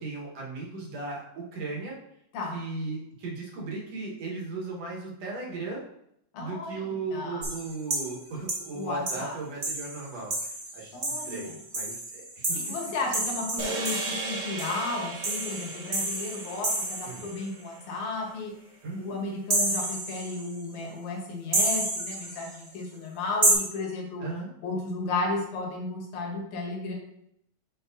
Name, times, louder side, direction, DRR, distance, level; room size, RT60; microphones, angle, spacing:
voice 1, 0.0-2.0 2.5-5.8 6.4-12.6 13.7-13.9 17.0-17.3 18.8-19.1 24.2-24.5, right 3 dB, 65° right, -3 dB, 2.4 m, -37 dB
voice 2, 6.3-6.8 7.1-7.5 8.7-9.4 10.9-11.5 12.5-18.5 19.0-24.2 24.6-27.0, left 3 dB, 80° left, 0 dB, 2.7 m, -34 dB
sound 1, 7.4-8.2 8.5-8.7 9.1-9.2 9.6-17.4 19.5-20.5 21.5-22.6 23.4-23.5, right 2 dB, 50° right, 0.8 m, -30 dB
sound 2, 13.6-18.0, right 3 dB, 85° right, 2.8 m, -37 dB
6.8 x 5.5 x 2.6 m, 0.76 s
omnidirectional pair, 3.4 m